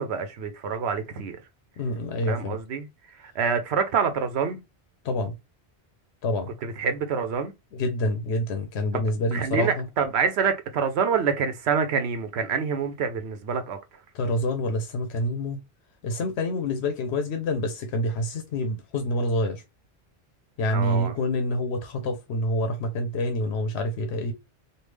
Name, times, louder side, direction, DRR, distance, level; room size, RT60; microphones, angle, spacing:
voice 1, 0.0-1.4 2.2-4.6 6.6-7.5 8.9-13.8 20.7-21.1, right 6 dB, 85° right, 0.9 m, -27 dB
voice 2, 1.8-2.6 5.0-5.3 6.2-6.5 7.8-9.8 14.1-15.6 16.0-19.6 20.6-24.3, left 1 dB, 90° left, 0.9 m, -27 dB
3.4 x 2.4 x 3.2 m
omnidirectional pair, 1.1 m